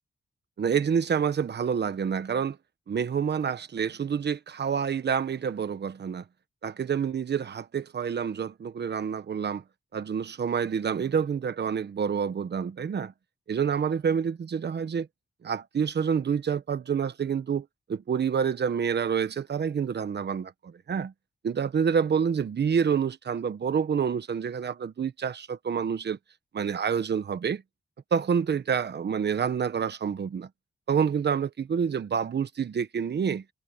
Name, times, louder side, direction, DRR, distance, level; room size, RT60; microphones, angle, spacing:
voice 1, 0.6-2.6 2.9-6.2 6.6-9.6 9.9-13.1 13.5-15.1 15.4-21.1 21.4-26.2 26.5-27.6 28.1-30.5 30.9-33.4, right 7 dB, 65° right, 1.2 m, -28 dB
wide cardioid pair, 95°, 19 cm